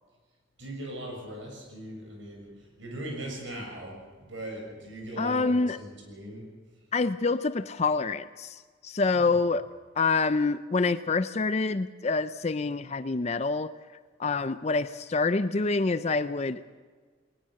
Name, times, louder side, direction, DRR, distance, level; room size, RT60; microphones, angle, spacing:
voice 1, 0.6-6.4 9.1-9.2, right 1 dB, 75° right, 1 dB, 6.8 m, -39 dB
voice 2, 5.2-5.8 6.9-9.7 10.0-13.7 14.2-16.6, left 3 dB, 35° left, 13 dB, 0.5 m, -26 dB
20.5 x 20.0 x 6.5 m, 1.5 s
head